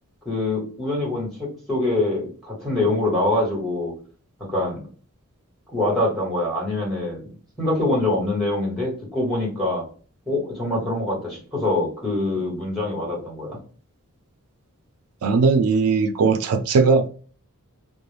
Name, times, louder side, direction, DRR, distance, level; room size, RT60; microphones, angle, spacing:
voice 1, 0.2-3.9 4.4-4.8 5.7-7.3 7.6-9.9 10.3-13.6, left 2 dB, ahead, 1.2 m, -24 dB
voice 2, 15.2-17.1, right 4 dB, 85° right, 0.4 m, -18 dB
2.4 x 2.0 x 3.1 m
head